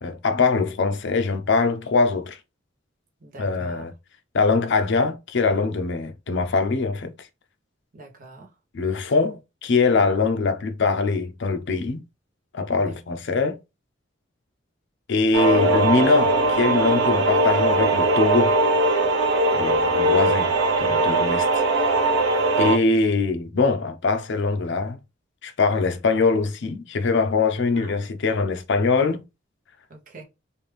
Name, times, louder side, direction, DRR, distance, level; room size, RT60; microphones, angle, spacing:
voice 1, 0.0-2.4 3.4-3.9 4.3-7.1 8.7-12.0 12.5-13.6 15.1-18.6 19.5-20.5 20.8-21.9 22.6-25.0 25.4-29.2, left 4 dB, 65° left, 0.6 m, -22 dB
voice 2, 3.2-3.8 7.9-8.5 12.8-12.9 19.8-19.9 27.7-27.9 29.9-30.2, right 2 dB, 45° right, 0.9 m, -43 dB
sound 1, 15.3-22.8, right 2 dB, 70° right, 0.6 m, -20 dB
3.3 x 2.5 x 3.2 m
head